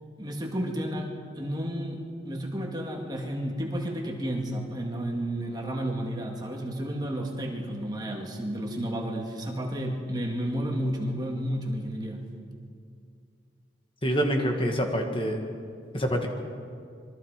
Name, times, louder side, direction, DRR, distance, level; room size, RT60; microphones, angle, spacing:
voice 1, 0.2-12.3, equal, 20° right, 1 dB, 2.4 m, -32 dB
voice 2, 14.0-15.4 15.9-16.3, equal, 30° left, 3 dB, 2.0 m, -26 dB
27.0 x 23.0 x 5.2 m, 2.3 s
head